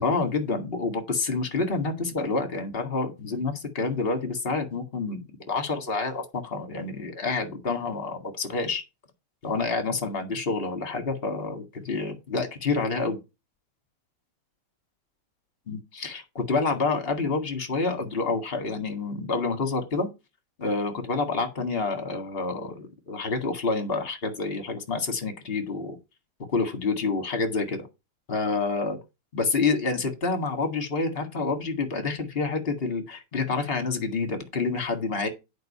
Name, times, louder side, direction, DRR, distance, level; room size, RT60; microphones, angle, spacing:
voice 1, 0.0-8.8 9.4-13.2 15.7-20.1 20.6-26.0 26.5-27.9 28.3-29.0 29.3-35.3, left 3 dB, 25° left, 1.5 m, -28 dB
9.4 x 5.3 x 5.5 m
omnidirectional pair, 3.3 m